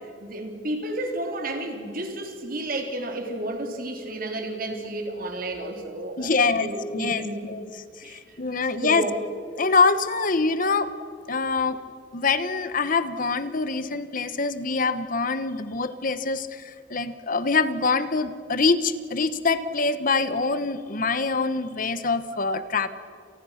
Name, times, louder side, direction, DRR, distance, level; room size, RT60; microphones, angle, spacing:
voice 1, 0.2-7.4 8.0-8.4 8.8-9.1, right 1 dB, 50° right, 4 dB, 3.7 m, -32 dB
voice 2, 6.2-7.7 8.0-9.1 9.6-10.9 11.3-11.8 12.1-22.9, left 4 dB, 45° left, 12 dB, 1.1 m, -24 dB
29.5 x 28.5 x 5.9 m, 2.3 s
head